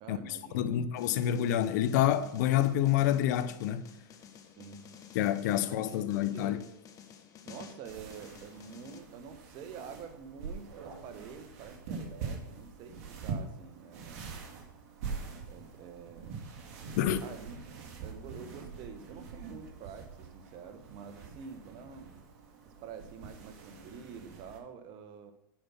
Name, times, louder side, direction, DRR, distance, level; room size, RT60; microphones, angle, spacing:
voice 1, 0.0-0.9 4.6-4.9 5.6-6.6 7.4-14.3 15.5-16.5 17.2-17.6 18.0-22.1 22.6-25.3, right 6 dB, 45° right, 1.3 m, -47 dB
voice 2, 0.5-3.9 5.1-6.6 17.0-17.3, left 11 dB, 60° left, 0.8 m, -28 dB
sound 1, 1.0-9.0, left 8 dB, 35° left, 1.2 m, -52 dB
sound 2, 7.8-24.6, right 5 dB, 60° right, 2.3 m, -44 dB
10.5 x 5.2 x 5.8 m
hypercardioid pair, 120°, 11 cm